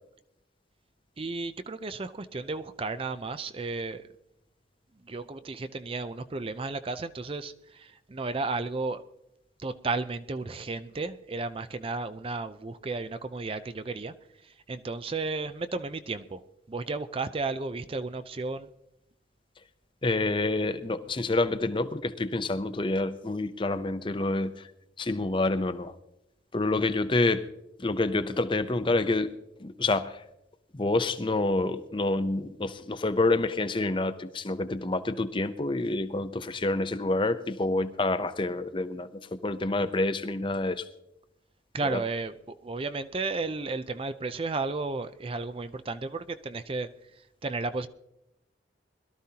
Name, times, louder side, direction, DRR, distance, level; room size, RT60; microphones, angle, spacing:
voice 1, 1.2-4.1 5.0-9.0 9.6-14.1 14.4-16.4 16.7-18.7 41.7-46.9 47.2-47.9, right 3 dB, 30° right, 12 dB, 0.4 m, -33 dB
voice 2, 20.0-24.7 25.0-25.9 26.5-27.5 27.8-29.3 29.6-30.2 30.7-40.9 41.9-42.0, left 2 dB, 25° left, 12 dB, 0.6 m, -28 dB
21.5 x 13.0 x 2.8 m, 0.84 s
head